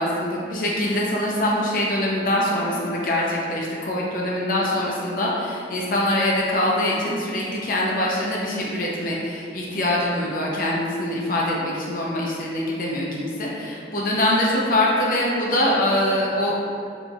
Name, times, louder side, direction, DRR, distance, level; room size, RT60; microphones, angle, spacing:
voice 1, 0.0-16.5, left 1 dB, 50° left, -4 dB, 0.6 m, -23 dB
4.4 x 2.9 x 2.4 m, 2.5 s
head